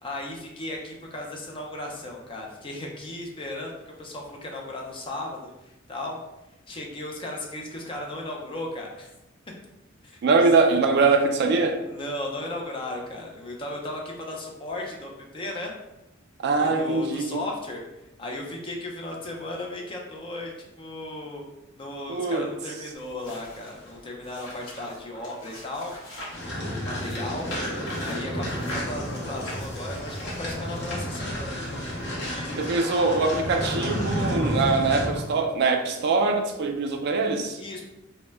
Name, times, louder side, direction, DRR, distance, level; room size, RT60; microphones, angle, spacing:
voice 1, 0.0-6.2 6.7-9.1 10.0-10.2 11.1-11.2 11.9-15.7 16.6-17.8 18.2-21.5 21.8-25.9 26.7-27.5 28.0-31.6 32.1-32.7 37.6-37.8, left 1 dB, 25° left, 0 dB, 0.4 m, -36 dB
voice 2, 10.2-11.8 16.4-17.4 22.1-22.5 32.6-37.6, right 3 dB, 55° right, 4 dB, 0.3 m, -23 dB
sound 1, 22.9-26.5 26.9-31.5 32.2-32.3, equal, 80° left, 0.8 m, -42 dB
sound 2, 26.3-35.3, equal, 55° left, 0.7 m, -31 dB
2.1 x 2.0 x 3.2 m, 0.96 s
head